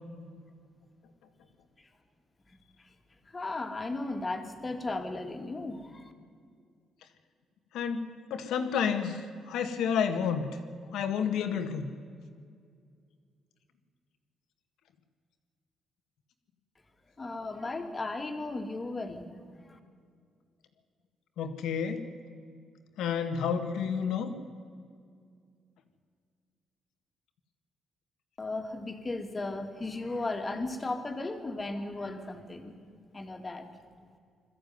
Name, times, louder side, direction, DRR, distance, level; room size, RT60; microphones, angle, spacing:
voice 1, 2.5-2.9 3.3-6.1 17.2-19.8 28.4-32.8 33.1-33.7, left 2 dB, 25° left, 5 dB, 2.4 m, -36 dB
voice 2, 7.7-9.2 9.5-10.6 10.9-11.9 21.4-22.0 23.0-24.3, left 7 dB, 80° left, 7 dB, 1.8 m, -30 dB
21.0 x 14.0 x 9.5 m, 2.2 s
cardioid pair, 90°, 0 cm